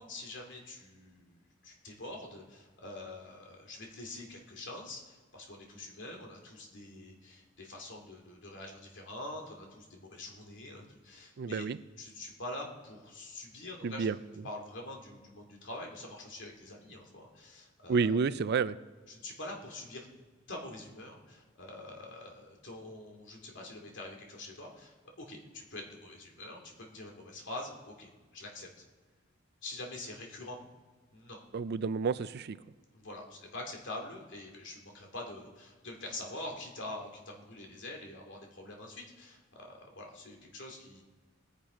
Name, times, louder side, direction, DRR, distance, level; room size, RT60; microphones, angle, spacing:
voice 1, 0.0-11.7 12.0-14.1 14.4-18.2 19.1-20.1 20.5-28.7 29.6-30.7 31.1-31.4 32.9-41.0, left 2 dB, 60° left, 1 dB, 2.5 m, -45 dB
voice 2, 11.4-11.8 13.8-14.1 17.9-18.8 31.5-32.6, right 5 dB, 55° right, 16 dB, 0.4 m, -30 dB
20.0 x 7.4 x 5.1 m, 1.4 s
head